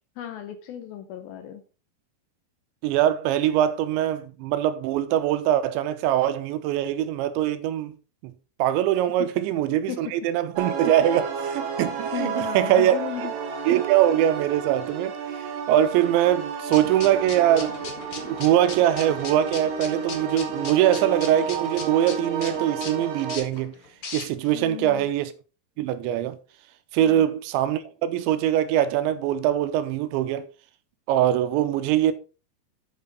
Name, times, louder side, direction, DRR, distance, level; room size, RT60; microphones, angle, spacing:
voice 1, 0.2-1.6 9.9-10.0 12.1-13.3 24.5-25.1 27.0-27.2, left 11 dB, 75° left, 2.3 m, -35 dB
voice 2, 2.8-8.0 8.2-8.3 8.6-13.0 13.7-23.7 24.1-25.3 25.8-26.4 26.9-30.5 31.1-32.1, right 11 dB, 90° right, 3.2 m, -23 dB
sound 1, 10.6-23.4, right 6 dB, 60° right, 2.8 m, -31 dB
sound 2, 16.7-24.6, left 5 dB, 55° left, 1.6 m, -39 dB
8.6 x 7.4 x 4.1 m
omnidirectional pair, 5.1 m